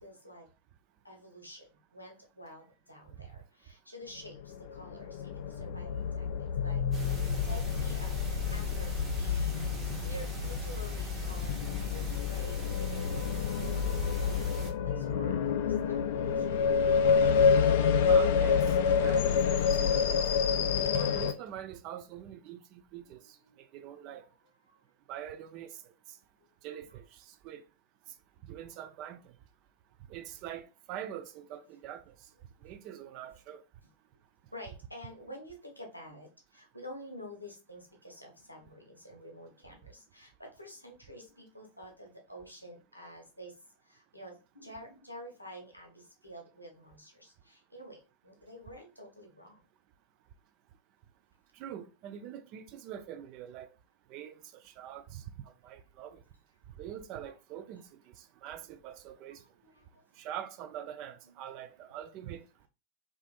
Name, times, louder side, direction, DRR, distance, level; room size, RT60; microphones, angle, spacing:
voice 1, 0.0-0.5 1.0-4.4 4.7-6.3 6.6-6.8 7.4-8.2 8.5-9.5 9.8-13.9 14.1-14.3 14.8-16.7 23.5-23.6 34.5-43.5 43.9-49.6 57.2-57.3 59.6-60.0, equal, 85° left, 0.8 m, -49 dB
sound 1, 4.4-21.3, left 6 dB, 50° left, 0.3 m, -28 dB
sound 2, 6.9-14.7, left 3 dB, 15° right, 1.0 m, -38 dB
voice 2, 18.1-18.6 19.0-20.4 21.0-23.2 23.7-24.2 25.1-25.7 26.6-27.0 27.4-27.6 28.5-29.2 30.1-32.0 32.6-33.6 51.6-53.7 54.1-54.3 54.6-55.2 55.6-56.2 56.8-57.8 58.4-59.4 60.2-62.4, right 10 dB, 40° right, 0.4 m, -43 dB
2.5 x 2.5 x 2.3 m
figure-of-eight pair, 90°, 0 cm